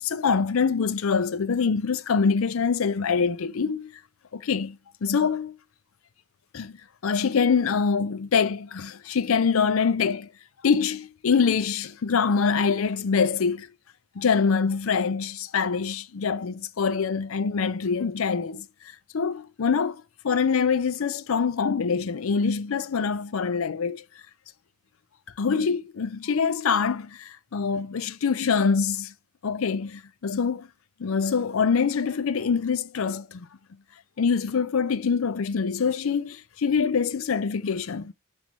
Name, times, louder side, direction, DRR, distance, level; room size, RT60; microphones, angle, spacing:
voice 1, 0.0-3.9 4.3-5.6 6.5-6.8 7.0-10.3 10.6-13.7 14.2-18.7 19.1-24.0 25.4-29.1 29.4-30.7 31.0-33.5 34.2-38.1, left 5 dB, 70° left, 0.5 m, -25 dB
7.6 x 3.1 x 5.1 m
head